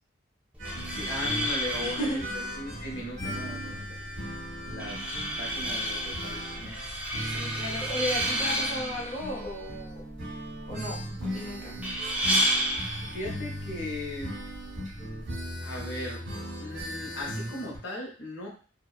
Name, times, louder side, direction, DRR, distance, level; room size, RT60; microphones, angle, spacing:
sound 1, 0.5-15.5, right 1 dB, 5° right, 0.4 m, -32 dB
sound 2, 0.6-17.8, equal, 85° right, 1.0 m, -38 dB
voice 1, 0.8-4.3 4.7-5.1 5.4-6.8 13.1-14.4 15.6-16.2 16.6-18.5, left 1 dB, 75° left, -2 dB, 0.8 m, -38 dB
voice 2, 1.8-2.2 7.2-10.0 10.7-11.8, equal, 35° left, -4 dB, 0.7 m, -35 dB
2.8 x 2.0 x 2.3 m, 0.40 s
head